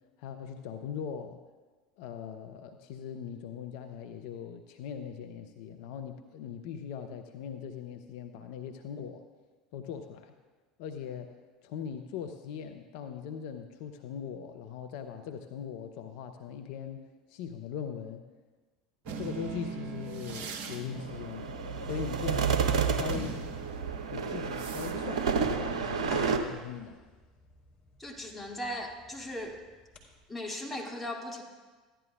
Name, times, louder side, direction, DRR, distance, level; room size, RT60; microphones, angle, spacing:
voice 1, 0.2-1.4 2.0-9.2 9.7-10.3 10.8-11.4 11.6-17.0 17.3-18.2 19.2-21.6 21.8-23.4 24.1-27.0, left 7 dB, 60° left, 7 dB, 0.6 m, -40 dB
sound 1, 19.0-26.6, right 4 dB, 55° right, 1.1 m, -43 dB
sound 2, 20.9-26.4, right 6 dB, 70° right, 0.8 m, -30 dB
sound 3, 24.7-30.2, left 3 dB, 35° left, 2.9 m, -52 dB
voice 2, 28.0-29.6 30.3-31.4, left 1 dB, 5° left, -2 dB, 2.3 m, -38 dB
15.0 x 11.0 x 2.3 m, 1.3 s
figure-of-eight pair, 75°, 4 cm